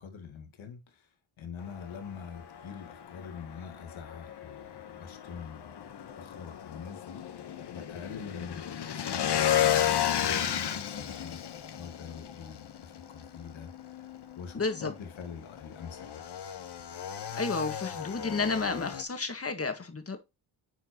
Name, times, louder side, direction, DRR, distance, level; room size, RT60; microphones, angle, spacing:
voice 1, 0.0-11.4 11.8-16.2, left 6 dB, 70° left, 2.0 m, -45 dB
Motorcycle / Engine, 1.6-19.0, left 10 dB, 55° left, 1.1 m, -34 dB
voice 2, 14.5-14.9 17.3-20.2, left 4 dB, 30° left, 1.7 m, -31 dB
9.1 x 4.5 x 3.0 m
cardioid pair, 65°, 49 cm